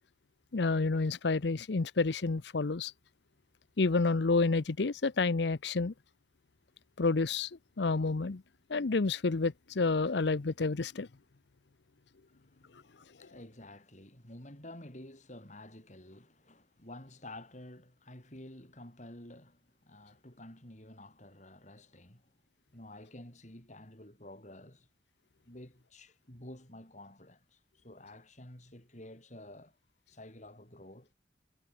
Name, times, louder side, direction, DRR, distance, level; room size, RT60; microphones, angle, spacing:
voice 1, 0.5-2.9 3.8-5.9 7.0-7.5 7.8-8.4 8.7-11.1, left 3 dB, 65° left, 0.7 m, -29 dB
voice 2, 12.3-22.3 22.7-24.9 25.4-29.8 30.1-31.1, left 1 dB, 40° left, 5.1 m, -51 dB
head